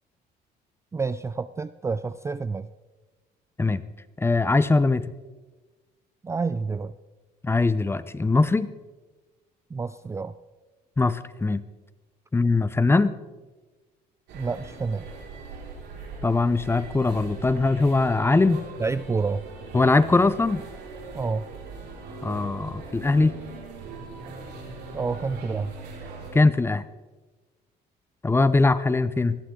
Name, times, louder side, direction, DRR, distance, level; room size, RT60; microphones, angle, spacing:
voice 1, 0.9-2.7 6.2-6.9 9.7-10.4 14.3-15.1 18.8-19.5 21.1-21.5 24.9-25.7, right 4 dB, 15° right, 14 dB, 0.4 m, -28 dB
voice 2, 4.2-5.0 7.4-8.7 11.0-11.6 12.3-13.1 16.2-18.6 19.7-20.6 22.2-23.3 26.3-26.8 28.2-29.4, left 3 dB, 15° left, 14 dB, 0.7 m, -21 dB
sound 1, 14.3-26.3, right 3 dB, 80° right, 5.1 m, -40 dB
20.0 x 15.0 x 3.8 m, 1.2 s
cardioid pair, 110°, 17 cm